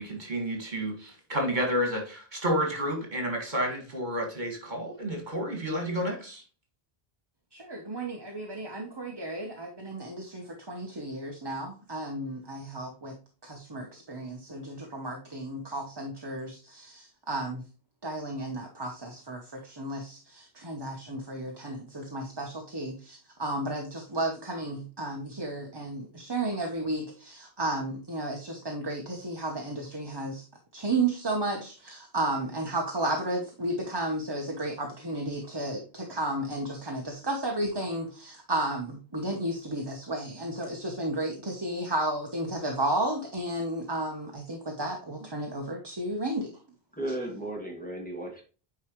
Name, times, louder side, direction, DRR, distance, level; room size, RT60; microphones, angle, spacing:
voice 1, 0.0-6.4, equal, 50° right, 1 dB, 2.4 m, -30 dB
voice 2, 7.5-13.2 13.4-17.6 18.0-30.4 30.7-46.5, right 1 dB, 25° right, 2 dB, 1.0 m, -33 dB
voice 3, 46.9-48.4, right 1 dB, 10° left, -1 dB, 2.1 m, -35 dB
9.2 x 4.8 x 3.1 m, 0.36 s
omnidirectional pair, 1.0 m